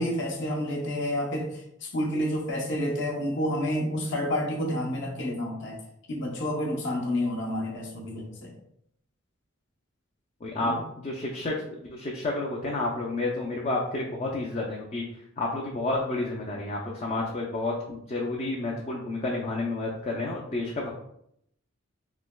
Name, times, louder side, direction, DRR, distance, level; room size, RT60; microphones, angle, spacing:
voice 1, 0.0-5.8 6.1-8.5 10.6-10.8, equal, 60° left, -1 dB, 0.7 m, -29 dB
voice 2, 10.4-10.7 11.0-15.0 15.4-20.9, left 2 dB, 30° left, -2 dB, 0.4 m, -30 dB
3.2 x 2.9 x 2.2 m, 0.74 s
head